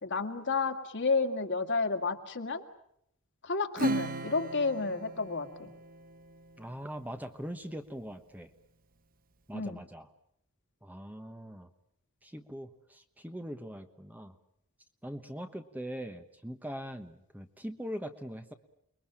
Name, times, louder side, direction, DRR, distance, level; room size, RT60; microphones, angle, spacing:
voice 1, 0.0-2.6 3.4-5.7 9.5-9.8, left 4 dB, 55° left, 5 dB, 2.2 m, -31 dB
Acoustic guitar / Strum, 3.8-6.7, right 2 dB, 40° right, 1.1 m, -36 dB
voice 2, 6.6-8.5 9.5-10.0 10.8-11.7 12.2-14.4 15.0-18.5, equal, 5° right, 7 dB, 1.2 m, -41 dB
29.5 x 22.0 x 8.8 m, 0.74 s
head